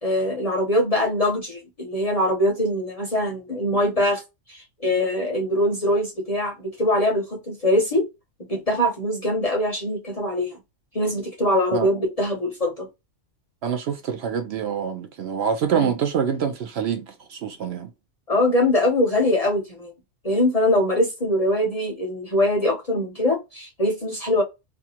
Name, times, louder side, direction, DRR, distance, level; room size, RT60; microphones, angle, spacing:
voice 1, 0.0-4.2 4.5-8.1 8.5-10.6 10.9-12.9 15.7-15.9 18.3-19.9 20.2-24.4, left 1 dB, 40° left, 0.6 m, -22 dB
voice 2, 13.6-17.9, right 7 dB, 65° right, 0.7 m, -26 dB
2.5 x 2.4 x 2.8 m
omnidirectional pair, 1.3 m